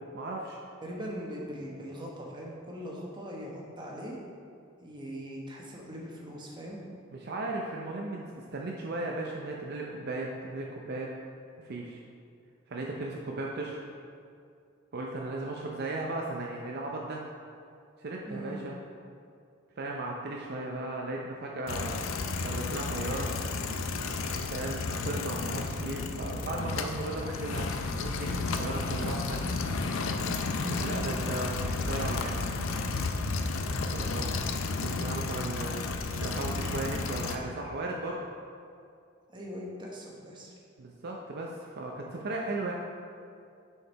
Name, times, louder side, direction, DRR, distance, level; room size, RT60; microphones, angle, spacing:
voice 1, 0.1-0.6 7.1-11.1 11.6-12.0 12.7-13.8 14.9-17.2 18.0-18.7 19.8-22.0 22.4-23.3 24.5-27.7 28.0-29.6 30.6-32.3 33.9-34.4 34.8-35.8 36.1-38.2 40.8-42.7, right 2 dB, 55° right, -1 dB, 0.6 m, -36 dB
voice 2, 0.8-4.2 4.8-6.8 18.3-18.5 30.7-31.0 39.3-40.5, equal, 25° right, -3 dB, 1.1 m, -41 dB
sound 1, 21.7-37.4, left 3 dB, 85° left, 0.5 m, -32 dB
6.4 x 4.7 x 4.6 m, 2.4 s
head